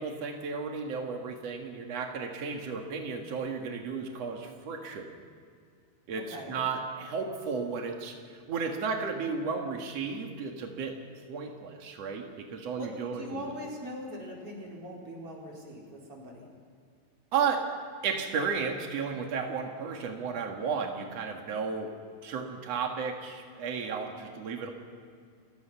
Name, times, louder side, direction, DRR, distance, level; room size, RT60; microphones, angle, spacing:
voice 1, 0.0-5.1 6.1-11.0 11.3-13.5 17.3-17.6 18.0-21.9 22.2-24.7, right 5 dB, 80° right, 2 dB, 1.4 m, -33 dB
voice 2, 6.2-6.6 12.8-16.5, equal, 25° right, -3 dB, 5.2 m, -41 dB
30.0 x 17.5 x 5.8 m, 2.2 s
omnidirectional pair, 6.0 m